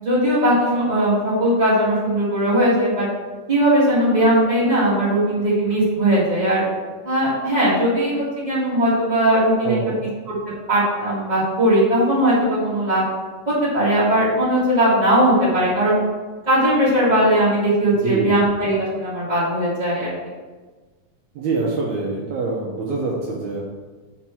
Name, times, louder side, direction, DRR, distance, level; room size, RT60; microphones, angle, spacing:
voice 1, 0.0-3.0 3.5-6.6 7.0-9.8 10.2-10.3 10.7-13.1 13.5-16.0 16.4-20.1, right 1 dB, 20° right, -9 dB, 1.0 m, -19 dB
voice 2, 9.6-10.0 17.9-18.4 21.4-23.6, right 3 dB, 70° right, -2 dB, 1.9 m, -25 dB
5.9 x 4.5 x 6.0 m, 1.3 s
omnidirectional pair, 4.0 m